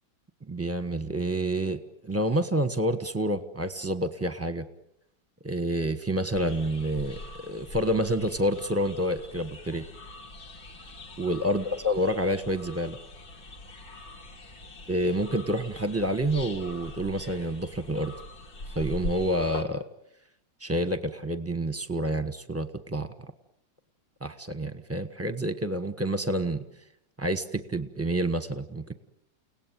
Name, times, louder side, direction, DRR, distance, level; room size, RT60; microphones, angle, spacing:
voice 1, 0.5-4.6 5.4-9.8 11.2-13.0 14.9-18.1 18.7-19.9 20.6-23.1 24.2-26.6 27.2-28.9, right 1 dB, 10° right, 10 dB, 0.9 m, -28 dB
sound 1, 6.3-19.6, left 2 dB, 75° left, 3.2 m, -42 dB
30.0 x 18.0 x 9.2 m, 0.81 s
omnidirectional pair, 2.1 m